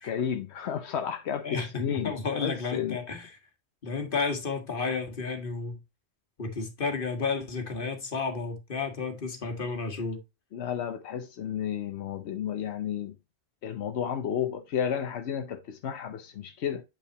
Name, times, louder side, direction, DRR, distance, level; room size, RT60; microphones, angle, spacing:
voice 1, 0.0-3.0 10.5-13.2 13.6-16.8, left 8 dB, 85° left, 1.0 m, -32 dB
voice 2, 1.4-3.4 3.8-5.8 6.4-10.2, left 4 dB, 55° left, 1.8 m, -32 dB
8.8 x 5.6 x 2.9 m
omnidirectional pair, 1.1 m